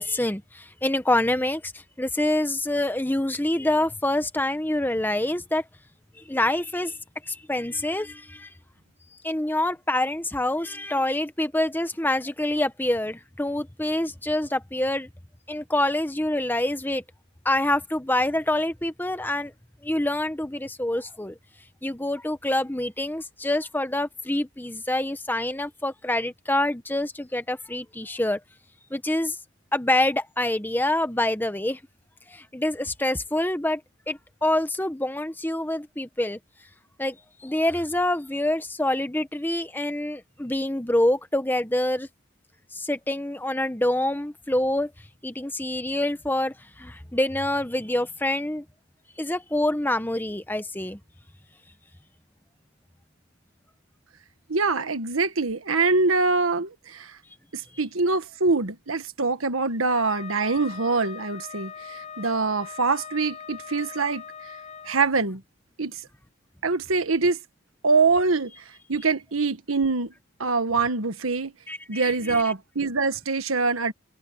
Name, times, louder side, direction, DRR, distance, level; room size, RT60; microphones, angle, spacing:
voice 1, 0.0-5.6 6.3-7.0 7.3-8.5 9.2-15.1 15.5-17.0 17.4-19.5 19.8-21.4 21.8-28.4 28.9-29.4 29.7-31.8 32.3-33.8 34.1-36.4 37.0-37.2 37.4-42.1 42.7-44.9 45.2-48.6 49.2-51.0 71.7-72.4, left 1 dB, 10° left, 1.1 m, -26 dB
voice 2, 54.5-57.2 57.5-64.2 64.9-65.4 65.8-66.0 66.6-67.4 67.8-68.6 68.9-70.1 70.4-71.5 71.9-73.9, right 4 dB, 90° right, 1.5 m, -24 dB
Wind instrument woodwind instrument, 59.9-65.0, left 7 dB, 35° left, 5.9 m, -41 dB
head